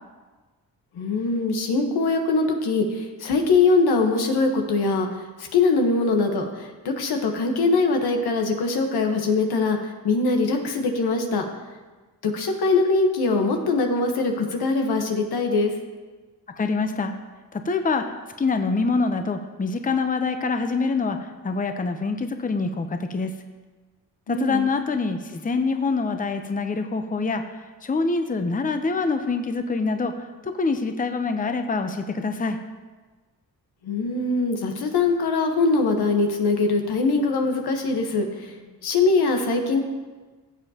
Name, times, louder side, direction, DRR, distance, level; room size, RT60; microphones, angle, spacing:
voice 1, 0.9-5.1 5.4-11.5 12.2-15.7 24.3-24.6 33.8-39.8, left 3 dB, 80° left, 3 dB, 1.3 m, -22 dB
voice 2, 16.6-17.2 17.5-23.3 24.3-32.6, left 4 dB, 20° left, 7 dB, 0.7 m, -25 dB
16.0 x 7.1 x 2.9 m, 1.3 s
cardioid pair, 70°, 37 cm